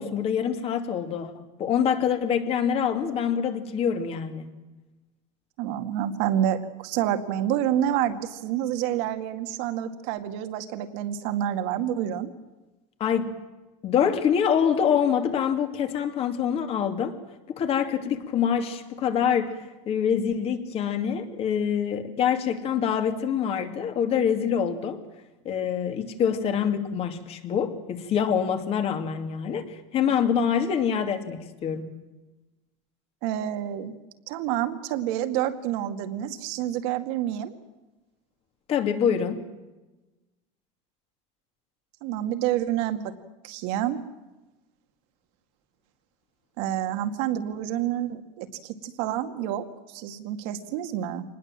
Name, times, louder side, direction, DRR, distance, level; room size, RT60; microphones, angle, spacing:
voice 1, 0.0-4.5 13.0-13.3 13.8-17.2 17.5-25.0 25.4-32.0 38.7-39.4, left 8 dB, 40° left, 7 dB, 2.7 m, -25 dB
voice 2, 5.6-12.3 33.2-33.9 34.3-37.5 42.0-43.0 43.4-44.0 46.6-51.2, right 11 dB, 70° right, 8 dB, 2.2 m, -28 dB
26.0 x 20.0 x 7.5 m, 1.1 s
supercardioid pair, 140°, 16 cm